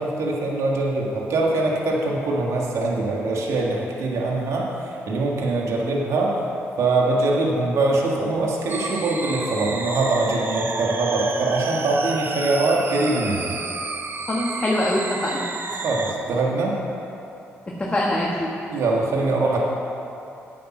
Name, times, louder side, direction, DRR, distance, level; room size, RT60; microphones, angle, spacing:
voice 1, 0.0-6.5 6.8-13.5 15.8-16.8 18.7-19.6, right 2 dB, 75° right, -2 dB, 1.8 m, -23 dB
sound 1, 8.7-16.1, right 3 dB, 45° right, 1.0 m, -31 dB
voice 2, 14.3-15.4 17.7-18.5, left 1 dB, 25° left, -3 dB, 1.4 m, -24 dB
8.7 x 8.4 x 6.0 m, 2.8 s
cardioid pair, 65°, 5 cm